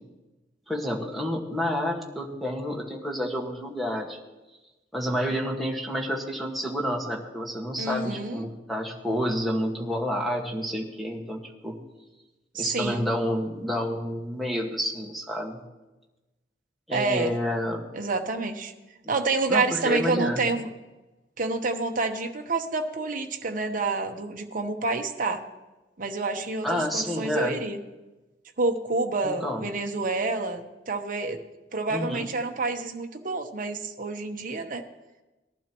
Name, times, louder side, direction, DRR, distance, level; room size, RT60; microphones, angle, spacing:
voice 1, 0.7-4.2 4.9-11.8 12.5-15.6 16.9-17.8 19.5-20.4 26.6-27.5 29.2-29.6 31.9-32.3, equal, ahead, -2 dB, 1.6 m, -29 dB
voice 2, 7.8-8.4 12.5-13.0 16.9-17.3 17.9-18.7 19.1-20.7 21.4-25.4 26.0-27.8 28.6-31.4 31.7-34.8, right 3 dB, 50° right, 5 dB, 1.0 m, -28 dB
18.5 x 11.5 x 3.0 m, 1.1 s
head